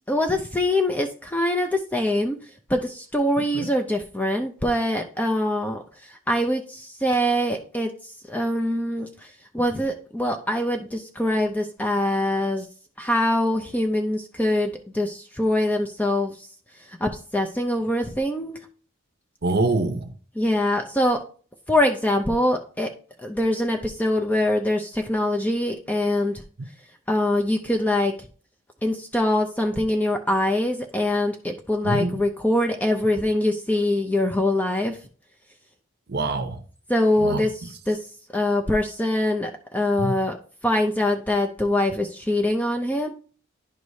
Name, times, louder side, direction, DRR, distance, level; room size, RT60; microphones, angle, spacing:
voice 1, 0.1-2.4 2.7-5.8 6.3-7.9 8.3-9.1 9.5-12.7 13.0-16.4 17.0-18.6 20.4-21.2 21.7-22.9 23.2-26.4 27.1-28.1 28.8-35.0 36.9-37.5 37.9-38.0 38.3-40.4 40.6-43.1, left 1 dB, 5° left, 0.4 m, -23 dB
voice 2, 19.4-20.1 26.6-26.7 31.8-32.2 36.1-36.6 37.2-37.5 40.0-40.1, right 2 dB, 45° right, 0.7 m, -25 dB
10.5 x 4.7 x 2.7 m
head